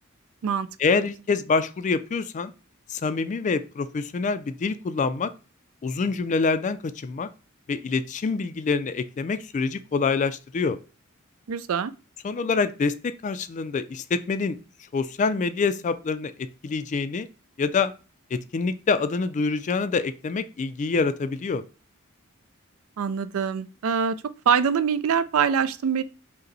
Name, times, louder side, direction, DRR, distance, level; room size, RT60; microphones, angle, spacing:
voice 1, 0.8-2.5 2.9-5.3 5.8-7.3 7.7-10.8 12.2-14.6 14.9-17.3 17.6-17.9 18.3-21.6, left 4 dB, 35° left, 0.3 m, -26 dB
voice 2, 11.5-11.9 23.0-24.1 24.5-26.0, right 6 dB, 75° right, 0.4 m, -24 dB
5.3 x 2.1 x 3.9 m
head